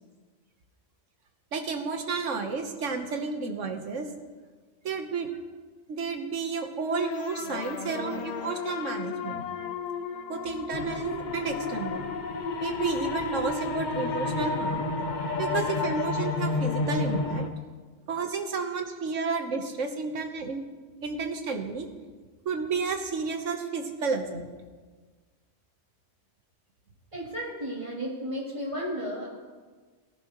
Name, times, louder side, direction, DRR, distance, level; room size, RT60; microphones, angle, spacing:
voice 1, 1.5-4.0 4.8-5.3 5.9-9.4 10.3-12.0 12.6-14.9 15.4-17.5 18.1-20.6 21.0-21.9 22.4-24.5, right 4 dB, 80° right, 5 dB, 1.5 m, -31 dB
sound 1, 6.9-11.9, left 6 dB, 65° left, 0.4 m, -36 dB
sound 2, 10.7-17.5, left 3 dB, 45° left, 0.7 m, -30 dB
voice 2, 27.1-29.3, equal, 25° right, -5 dB, 3.2 m, -33 dB
18.5 x 11.0 x 3.1 m, 1.4 s
omnidirectional pair, 1.3 m